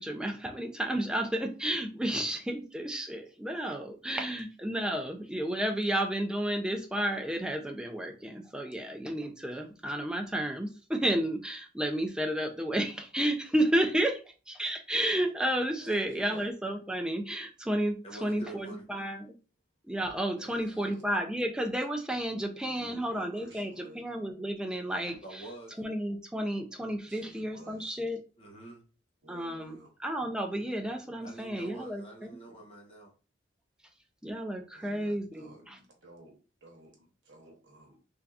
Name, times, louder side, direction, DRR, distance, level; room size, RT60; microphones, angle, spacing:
voice 1, 0.0-19.3 19.9-28.2 29.3-32.4 34.2-35.8, right 1 dB, 5° right, 0.4 m, -32 dB
voice 2, 15.8-16.5 20.4-21.0 22.6-24.1 27.1-28.0 29.2-29.9 34.7-38.0, right 1 dB, 75° right, 1.1 m, -53 dB
voice 3, 18.0-18.9 25.2-25.8 28.4-28.8 31.2-33.1, right 2 dB, 30° left, 1.0 m, -46 dB
3.4 x 2.7 x 2.4 m
head